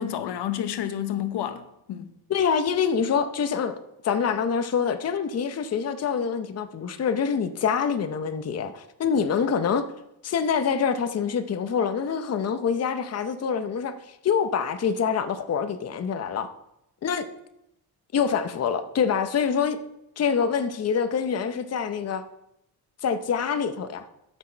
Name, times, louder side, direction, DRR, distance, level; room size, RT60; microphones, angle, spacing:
voice 1, 0.0-2.1, left 10 dB, 80° left, 0.9 m, -30 dB
voice 2, 2.3-3.8 4.0-9.8 10.2-16.5 17.0-17.3 18.1-19.8 20.2-22.2 23.0-24.0, left 6 dB, 40° left, 0.7 m, -25 dB
12.5 x 6.2 x 4.4 m
cardioid pair, 115°, 40 cm